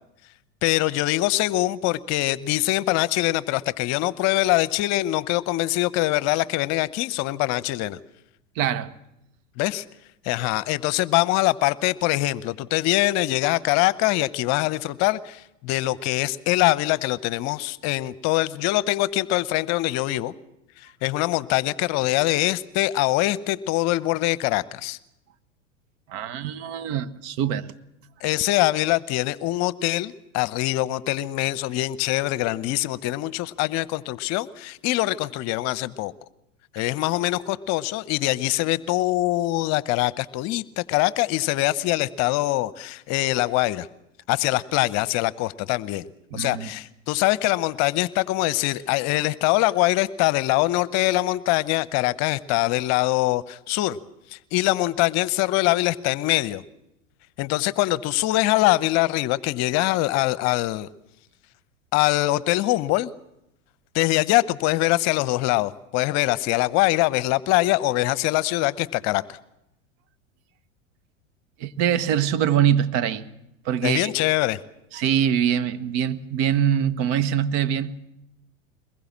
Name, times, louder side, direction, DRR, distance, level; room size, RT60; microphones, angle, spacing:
voice 1, 0.6-8.0 9.6-9.8 10.2-20.3 20.8-25.0 28.2-36.1 36.7-43.9 44.3-46.1 46.3-54.0 54.3-56.6 57.4-60.9 61.9-63.1 63.9-69.2 73.8-74.6, left 18 dB, 45° left, 0.9 m, -23 dB
voice 2, 8.5-8.9 26.1-27.7 46.3-46.7 71.6-73.2 73.6-74.1 74.9-77.9, right 9 dB, 50° right, 1.4 m, -23 dB
23.0 x 20.5 x 7.4 m
hypercardioid pair, 95°, 38 cm